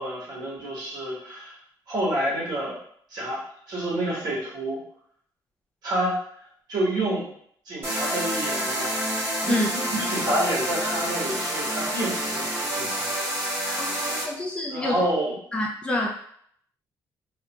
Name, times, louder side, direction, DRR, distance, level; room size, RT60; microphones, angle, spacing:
voice 1, 0.0-1.6 1.9-2.8 3.1-3.4 3.7-4.8 5.8-6.2 6.7-7.3 7.7-8.9 9.4-9.6 9.9-13.1 13.6-14.2 14.7-15.4, right 1 dB, 60° right, -5 dB, 1.2 m, -28 dB
sound 1, 7.8-14.2, right 1 dB, 30° right, 1.1 m, -28 dB
voice 2, 13.8-15.0 15.5-16.1, left 1 dB, 15° left, -2 dB, 0.3 m, -27 dB
2.7 x 2.1 x 2.9 m, 0.64 s
cardioid pair, 160°, 8 cm